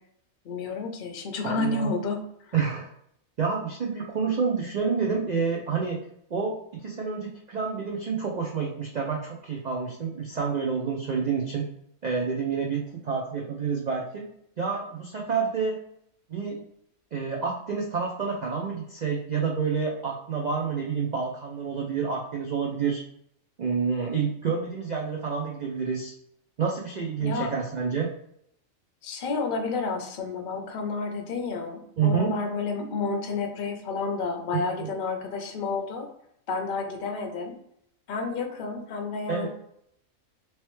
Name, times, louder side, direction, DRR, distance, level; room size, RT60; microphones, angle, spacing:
voice 1, 0.4-2.2 27.2-27.5 29.0-36.1 36.5-37.5 38.1-39.5, left 4 dB, 55° left, 3 dB, 0.6 m, -30 dB
voice 2, 1.4-1.9 2.5-2.9 3.4-6.0 6.3-11.6 12.0-14.2 14.6-15.8 16.3-16.6 17.1-23.0 23.6-26.1 26.6-28.1 32.0-32.3 34.5-34.9 39.3-39.5, right 5 dB, 80° right, -1 dB, 0.3 m, -28 dB
3.1 x 3.0 x 3.0 m, 0.73 s
omnidirectional pair, 1.4 m